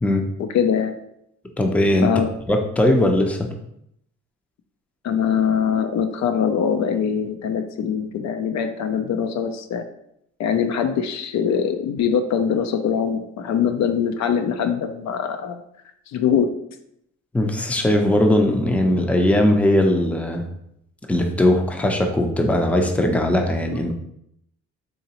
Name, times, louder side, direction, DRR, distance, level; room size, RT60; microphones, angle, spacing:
voice 1, 0.4-0.9 2.0-2.3 5.0-9.9 10.4-15.6 16.1-16.5, left 7 dB, 65° left, 7 dB, 0.4 m, -22 dB
voice 2, 1.6-2.1 2.5-3.5 17.3-20.5 21.1-23.9, left 1 dB, 5° left, 3 dB, 0.5 m, -19 dB
3.9 x 2.9 x 2.9 m, 0.75 s
cardioid pair, 90°, 30 cm